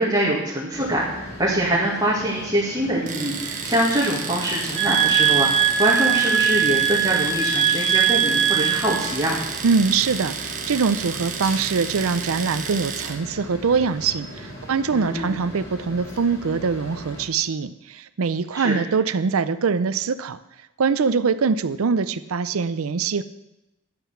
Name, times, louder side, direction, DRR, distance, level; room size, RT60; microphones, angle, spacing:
voice 1, 0.0-5.5 5.8-9.4 14.9-15.4 18.5-18.8, right 1 dB, 20° right, -7 dB, 2.1 m, -24 dB
sound 1, 0.7-17.3, left 1 dB, 50° left, 3.2 m, -39 dB
Domestic sounds home sounds, 3.1-13.2, right 6 dB, 40° right, 1.2 m, -32 dB
sound 2, 4.7-9.0, right 8 dB, 5° left, 2.9 m, -20 dB
voice 2, 9.6-20.4 20.8-23.2, right 5 dB, 85° right, 14 dB, 0.5 m, -23 dB
10.5 x 9.1 x 5.8 m, 0.93 s
head